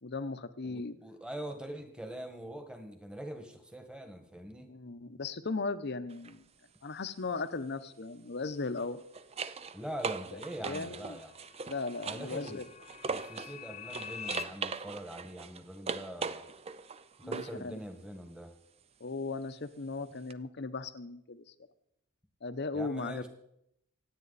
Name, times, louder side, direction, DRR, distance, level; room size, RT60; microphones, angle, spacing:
voice 1, 0.0-1.0 4.7-6.4 6.8-9.0 10.3-11.2 11.7-12.6 17.2-17.8 19.0-21.4 22.4-23.2, left 3 dB, 50° left, 12 dB, 0.8 m, -37 dB
voice 2, 0.6-4.7 9.7-11.3 12.0-12.6 13.1-16.4 17.2-18.5 22.7-23.3, right 1 dB, 5° right, 5 dB, 1.5 m, -43 dB
sound 1, 6.1-6.3 8.6-13.6 13.9-17.6 20.3-20.4, right 5 dB, 30° right, 0.4 m, -40 dB
sound 2, 10.3-14.4, left 8 dB, 30° left, 0.4 m, -47 dB
26.0 x 8.9 x 4.1 m, 0.77 s
head